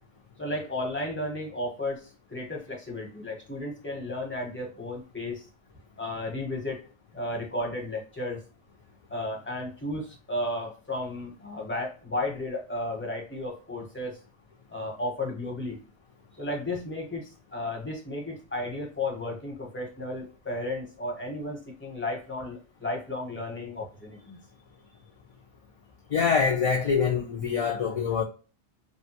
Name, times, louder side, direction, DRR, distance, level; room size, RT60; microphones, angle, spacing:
voice 1, 0.4-5.4 6.0-6.8 7.1-8.4 9.1-14.2 14.7-15.8 16.4-24.4, left 1 dB, 15° left, 0.8 m, -33 dB
voice 2, 26.1-28.2, left 6 dB, 50° left, 0.4 m, -25 dB
3.1 x 2.2 x 2.8 m
omnidirectional pair, 1.0 m